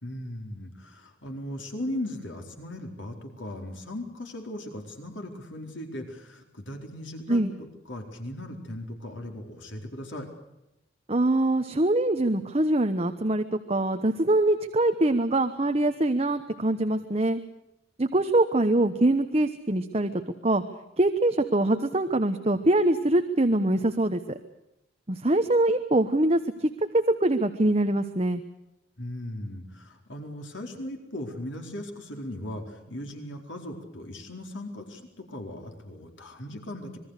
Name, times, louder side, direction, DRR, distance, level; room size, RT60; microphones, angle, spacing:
voice 1, 0.0-10.3 29.0-37.0, left 1 dB, 90° left, 3 dB, 4.4 m, -38 dB
voice 2, 11.1-17.4 18.0-20.6 21.0-24.4 25.1-28.4, right 1 dB, 35° right, 8 dB, 1.1 m, -24 dB
26.5 x 21.5 x 6.7 m, 0.90 s
head